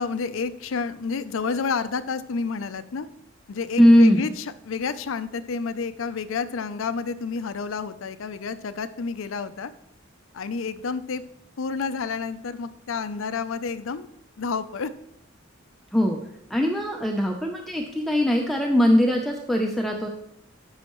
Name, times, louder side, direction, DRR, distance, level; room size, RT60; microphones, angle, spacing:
voice 1, 0.0-3.1 3.5-9.7 10.3-11.2 11.6-14.1 14.4-14.9, left 5 dB, 80° left, 13 dB, 0.5 m, -30 dB
voice 2, 3.8-4.3 15.9-16.2 16.5-20.1, equal, ahead, 1 dB, 0.5 m, -20 dB
12.5 x 5.6 x 3.1 m, 0.80 s
head